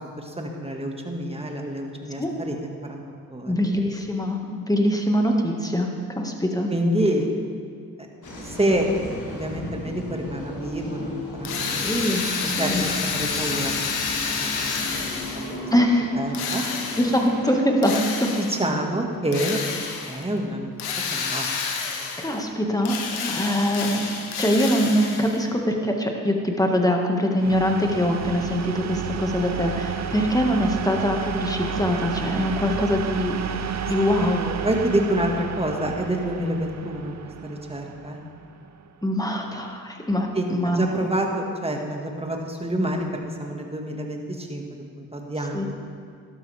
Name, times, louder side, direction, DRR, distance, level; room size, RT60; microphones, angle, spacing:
voice 1, 0.2-3.0 3.3-3.5 6.7-7.3 8.4-8.9 9.3-11.9 12.6-14.0 14.4-14.5 14.9-15.1 16.2-16.6 18.4-19.6 20.1-20.7 21.1-21.5 34.2-34.3 34.6-37.2 37.4-38.2 40.3-44.6 45.0-45.7, right 1 dB, 15° right, 2 dB, 1.9 m, -27 dB
voice 2, 3.5-5.9 6.2-6.7 11.6-12.9 15.7-16.1 17.0-18.3 22.2-23.0 23.2-33.4 33.9-34.6 39.0-41.0 45.5-45.7, equal, 10° left, 2 dB, 1.8 m, -23 dB
sound 1, 8.2-17.6, left 1 dB, 55° left, 3.2 m, -35 dB
Drill, 11.4-15.6 16.3-17.3 17.8-18.7 19.3-20.2 20.8-22.4 22.8-25.4, left 5 dB, 85° left, 1.2 m, -29 dB
sound 2, 27.4-39.0, right 7 dB, 45° right, 0.8 m, -31 dB
12.0 x 12.0 x 3.5 m, 2.2 s
supercardioid pair, 50°, 38 cm